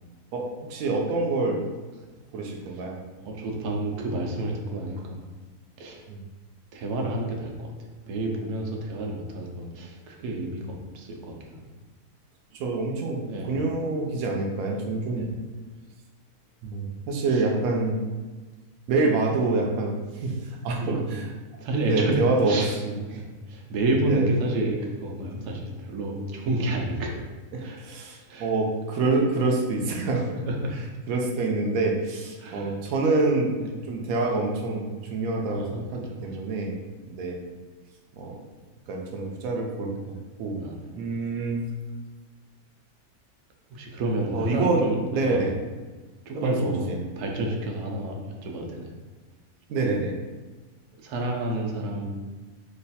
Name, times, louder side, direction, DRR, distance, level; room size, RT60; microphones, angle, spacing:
voice 1, 0.3-1.6 2.3-3.0 6.1-6.2 12.5-15.3 16.6-18.0 18.9-20.0 20.2-20.4 20.6-21.2 21.9-22.5 22.8-22.9 24.0-24.3 27.5-30.4 31.1-33.5 33.9-36.7 37.1-37.4 38.1-38.4 38.9-40.6 40.9-41.7 44.3-44.8 45.1-45.5 46.3-47.0 49.7-50.1, right 3 dB, 75° right, 0 dB, 1.0 m, -26 dB
voice 2, 3.1-5.3 5.8-6.0 6.7-7.7 8.1-11.7 13.3-13.6 15.2-15.3 17.3-17.4 20.8-21.1 21.6-22.7 23.1-27.2 27.6-27.8 28.2-28.5 30.5-30.9 32.4-32.8 33.6-33.7 35.5-36.4 40.6-40.8 43.7-45.0 45.3-45.5 46.3-46.9 47.2-48.2 48.4-48.9 51.0-52.0, right 2 dB, 90° right, 0 dB, 1.2 m, -30 dB
3.1 x 2.3 x 4.0 m, 1.3 s
omnidirectional pair, 1.6 m